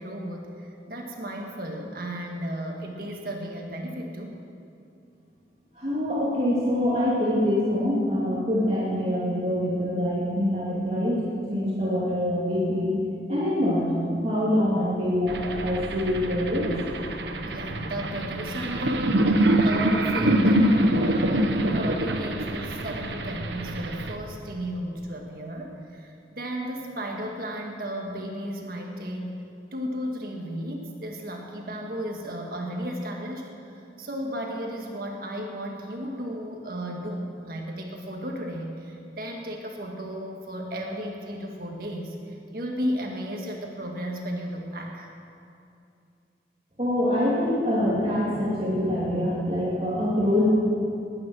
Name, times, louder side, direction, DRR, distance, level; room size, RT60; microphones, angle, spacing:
voice 1, 0.0-4.4 17.4-29.3 29.7-33.5 34.0-45.1, equal, 55° right, 1 dB, 1.7 m, -34 dB
voice 2, 5.8-11.2 11.5-12.9 13.3-16.7 46.8-50.5, left 1 dB, 35° right, -8 dB, 2.6 m, -25 dB
sound 1, 15.3-24.2, right 1 dB, 80° right, 1.0 m, -25 dB
20.5 x 9.5 x 6.3 m, 2.6 s
head